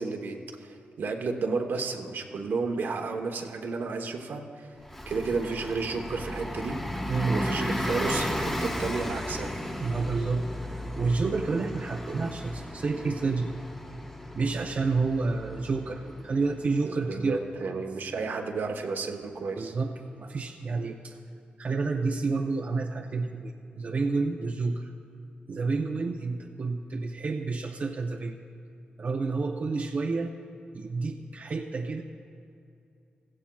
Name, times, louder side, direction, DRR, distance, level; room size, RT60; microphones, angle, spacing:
voice 1, 0.0-4.8 5.1-6.8 7.3-9.5 16.8-19.7, right 4 dB, 70° right, 4 dB, 1.0 m, -32 dB
Bus, 4.8-17.1, equal, 10° left, 1.3 m, -35 dB
voice 2, 7.1-7.4 9.8-10.5 11.0-13.6 14.3-17.4 19.6-21.2 21.6-24.9 25.5-28.4 29.0-30.3 30.7-32.0, right 4 dB, 45° right, 2 dB, 0.6 m, -29 dB
16.0 x 15.0 x 2.3 m, 2.6 s
cardioid pair, 75°, 4 cm